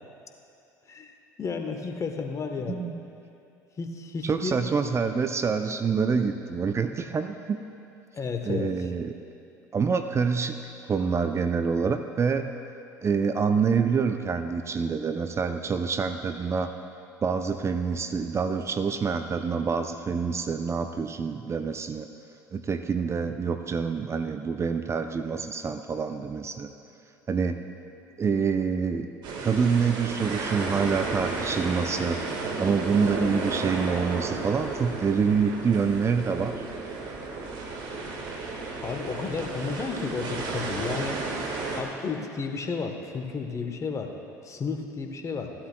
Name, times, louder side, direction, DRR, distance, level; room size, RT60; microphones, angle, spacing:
voice 1, 0.9-2.8 3.8-4.6 8.1-8.7 38.8-41.2 41.8-44.1 44.4-45.5, left 5 dB, 35° left, 5 dB, 1.1 m, -32 dB
voice 2, 2.7-3.0 4.2-7.6 8.4-9.1 9.7-10.6 10.9-12.5 13.0-16.7 17.2-22.1 22.5-26.7 27.3-27.6 28.2-29.1 29.4-32.2 32.6-36.7, right 5 dB, 30° right, 8 dB, 0.5 m, -26 dB
sound 1, 29.2-41.8, right 3 dB, 55° right, 1.6 m, -33 dB
15.5 x 11.5 x 2.2 m, 2.7 s
hypercardioid pair, 60°, 9 cm